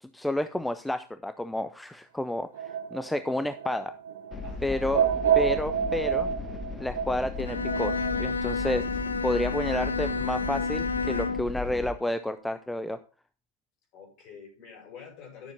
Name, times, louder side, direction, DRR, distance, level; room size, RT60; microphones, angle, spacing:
voice 1, 0.0-2.5 2.9-3.9 4.6-5.1 5.3-6.3 6.8-7.9 8.2-8.8 9.2-13.0, left 1 dB, 5° left, 10 dB, 0.6 m, -30 dB
sound 1, 2.5-8.1, right 8 dB, 60° right, 0.8 m, -28 dB
sound 2, 4.3-11.9, left 4 dB, 20° left, 1.5 m, -37 dB
voice 2, 4.4-4.9 13.9-15.5, left 6 dB, 40° left, 2 dB, 5.5 m, -47 dB
Bowed string instrument, 7.4-11.6, left 4 dB, 75° left, 0.5 m, -30 dB
12.0 x 7.1 x 4.0 m, 0.33 s
figure-of-eight pair, 90°, 0 cm